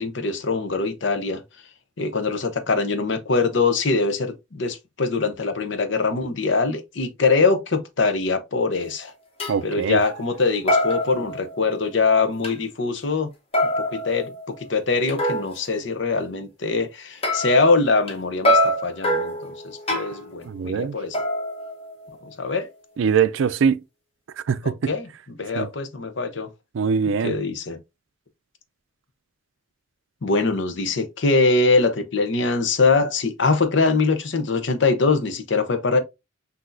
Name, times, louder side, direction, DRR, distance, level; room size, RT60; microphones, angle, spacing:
voice 1, 0.0-1.4 2.0-9.1 9.6-13.3 13.9-14.3 14.7-19.3 19.6-21.2 22.4-22.7 24.9-26.5 27.2-27.8 30.2-36.0, left 3 dB, 70° left, 0.8 m, -22 dB
sound 1, 8.8-8.9 9.4-9.6 10.0-10.4 10.7-12.0 12.4-12.5 13.5-15.6 17.2-18.1 18.4-20.3 21.1-22.3, left 1 dB, 30° left, 1.1 m, -24 dB
voice 2, 9.5-10.0 20.5-21.0 23.0-23.8 24.5-24.9 25.6-25.7 26.7-27.3, right 6 dB, 75° right, 0.4 m, -22 dB
6.0 x 2.8 x 2.6 m
head